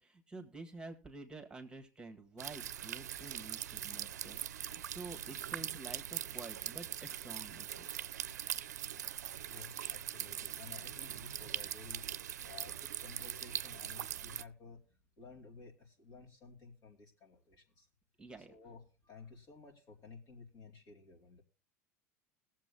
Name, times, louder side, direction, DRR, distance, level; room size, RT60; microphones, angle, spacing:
voice 1, 0.0-8.1 18.2-18.5, right 3 dB, 10° right, 5 dB, 1.8 m, -50 dB
sound 1, 2.4-14.4, right 10 dB, 85° right, 0.4 m, -42 dB
voice 2, 9.5-12.0 12.4-14.8 15.2-17.9 18.5-21.4, left 4 dB, 45° left, 0 dB, 2.7 m, -54 dB
21.0 x 7.6 x 2.3 m, 0.36 s
hypercardioid pair, 85°, 9 cm